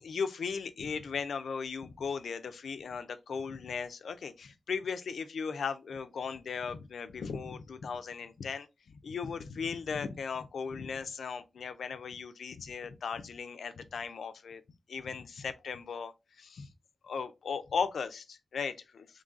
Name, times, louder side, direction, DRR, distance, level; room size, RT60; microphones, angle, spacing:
voice 1, 0.0-14.6 14.9-16.7 17.0-19.2, left 5 dB, 80° left, 0.5 m, -37 dB
3.8 x 3.2 x 3.7 m
wide cardioid pair, 175°, 0 cm